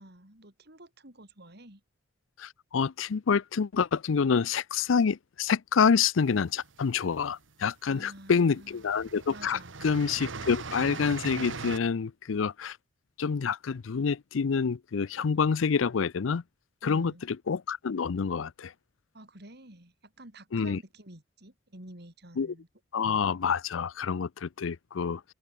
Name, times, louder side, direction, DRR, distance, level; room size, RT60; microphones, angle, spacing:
voice 1, 0.0-1.8 7.9-8.8 9.3-9.7 16.8-17.2 19.1-22.7, right 1 dB, 55° right, 5.7 m, -49 dB
voice 2, 2.4-12.8 13.2-16.4 16.8-18.7 20.5-20.8 22.4-22.5 22.9-25.3, left 6 dB, 90° left, 0.5 m, -27 dB
sound 1, 6.4-7.3 8.2-8.3 8.6-11.8, right 4 dB, 80° right, 1.4 m, -39 dB
head